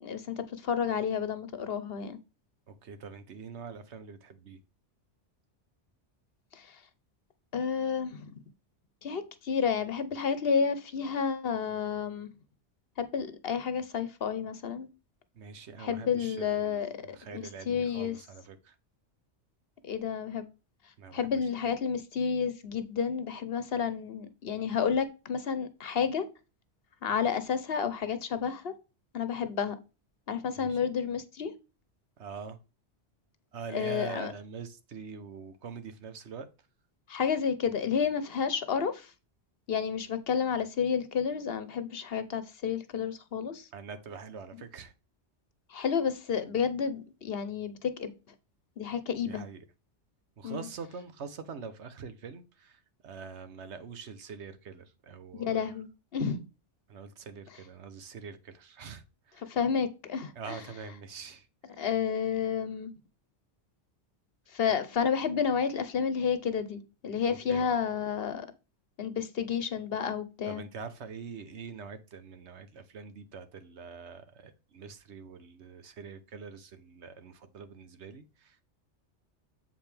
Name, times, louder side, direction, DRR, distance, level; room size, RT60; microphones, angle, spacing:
voice 1, 0.0-2.2 6.5-6.8 7.5-8.3 9.0-12.3 13.0-14.9 15.8-18.2 19.8-20.5 21.1-26.3 27.0-28.7 29.1-29.8 30.3-31.5 33.7-34.3 37.1-39.1 39.7-43.7 45.7-48.1 48.8-49.4 50.4-50.7 55.3-56.4 59.5-60.6 61.8-62.9 64.5-68.5 69.0-70.6, left 7 dB, 60° left, 0.9 m, -31 dB
voice 2, 2.7-4.6 15.3-18.8 21.0-21.7 30.6-30.9 32.2-32.6 33.5-36.5 43.7-44.9 49.3-49.6 50.4-55.7 56.9-59.5 60.3-61.8 67.3-67.7 70.5-78.6, right 5 dB, 70° right, 1.2 m, -44 dB
7.5 x 5.0 x 3.4 m
omnidirectional pair, 1.2 m